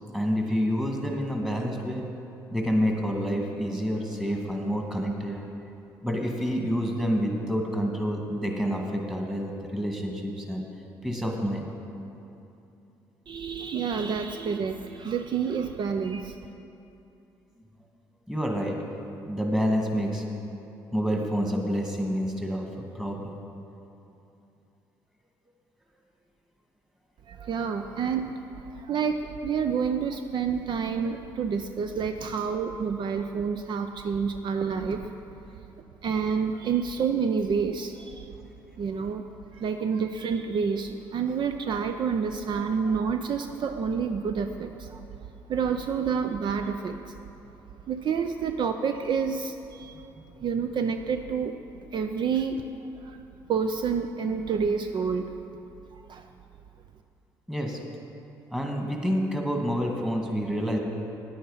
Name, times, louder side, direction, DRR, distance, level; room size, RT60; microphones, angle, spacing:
voice 1, 0.1-2.0 2.5-5.4 6.0-10.6 11.0-11.6 18.3-18.8 19.3-20.3 20.9-22.7 22.9-23.3 57.5-57.8 58.5-60.8, equal, 5° right, 1 dB, 1.8 m, -28 dB
voice 2, 13.3-16.4 27.3-35.4 36.0-38.3 38.8-39.2 39.5-45.2 45.5-47.1 47.9-50.1 50.4-51.5 51.9-52.6 53.0-53.2 53.5-55.3 56.1-56.3, right 6 dB, 60° right, 6 dB, 0.5 m, -29 dB
9.3 x 8.7 x 5.5 m, 2.8 s
supercardioid pair, 60°, 9 cm